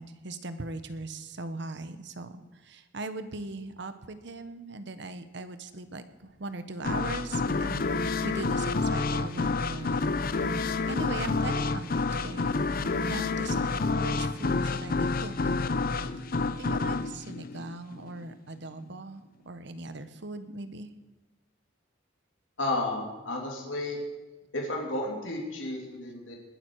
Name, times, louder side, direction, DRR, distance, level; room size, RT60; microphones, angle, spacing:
voice 1, 0.0-7.9 8.2-10.2 10.5-15.7 16.6-20.9, right 2 dB, 65° right, 10 dB, 1.2 m, -40 dB
sound 1, 5.0-6.0 6.3-7.2 7.5-9.1, left 2 dB, 65° left, 3.1 m, -42 dB
sound 2, 6.8-18.3, left 3 dB, 50° left, 0.7 m, -29 dB
voice 2, 22.6-24.0 24.5-26.3, left 2 dB, 85° left, 0 dB, 2.9 m, -32 dB
20.5 x 12.0 x 4.8 m, 1.1 s
head